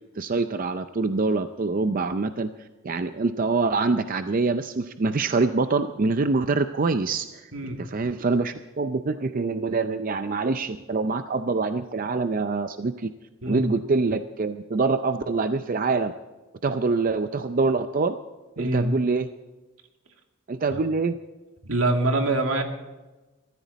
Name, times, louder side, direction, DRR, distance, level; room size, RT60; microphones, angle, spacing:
voice 1, 0.2-7.5 7.8-13.1 13.5-16.1 16.6-18.2 18.6-19.3 20.5-21.2, right 3 dB, 40° right, 10 dB, 0.5 m, -25 dB
voice 2, 7.5-7.8 13.4-13.6 18.6-18.9 20.7-20.8 21.6-22.6, right 2 dB, 85° right, 4 dB, 2.2 m, -24 dB
21.5 x 14.0 x 4.1 m, 1.1 s
head